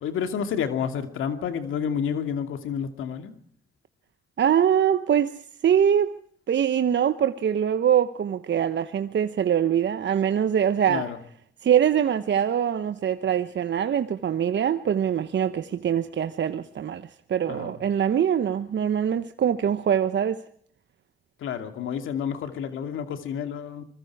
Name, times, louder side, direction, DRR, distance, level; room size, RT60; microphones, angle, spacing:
voice 1, 0.0-3.3 10.9-11.2 17.5-17.7 21.4-23.8, left 7 dB, 85° left, 2.6 m, -30 dB
voice 2, 4.4-5.3 5.6-6.1 6.5-11.1 11.6-20.4, right 9 dB, 65° right, 1.1 m, -23 dB
25.0 x 21.5 x 4.9 m
supercardioid pair, 55°, 20 cm